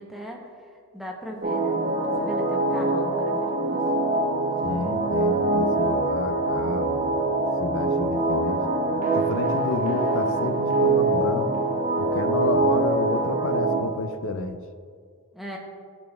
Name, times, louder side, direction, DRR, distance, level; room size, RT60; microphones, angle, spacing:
voice 1, 0.0-3.8 15.3-15.6, equal, ahead, -1 dB, 0.7 m, -38 dB
sound 1, 1.4-13.8, right 2 dB, 35° right, 0.6 m, -24 dB
voice 2, 4.6-7.3 7.6-8.6 9.1-11.5 12.0-14.6, left 3 dB, 60° left, 9 dB, 0.4 m, -30 dB
11.5 x 4.1 x 2.3 m, 2.2 s
head